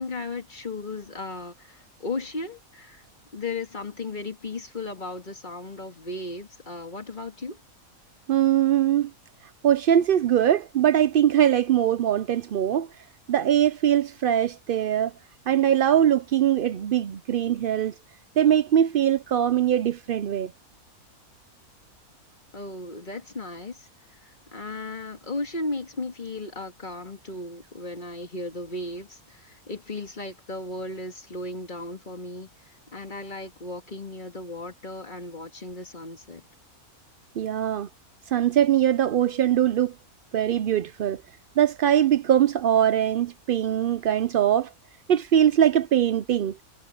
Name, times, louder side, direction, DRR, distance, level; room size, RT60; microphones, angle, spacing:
voice 1, 0.0-3.0 3.3-7.6 22.5-23.9 24.5-32.5 32.9-36.4, left 2 dB, 30° left, 2.3 m, -35 dB
voice 2, 8.3-9.1 9.6-12.9 13.3-15.1 15.5-17.9 18.4-20.5 37.4-37.9 38.3-39.9 40.3-41.2 41.6-44.7 45.1-46.5, right 10 dB, 65° right, 0.5 m, -22 dB
omnidirectional pair, 1.5 m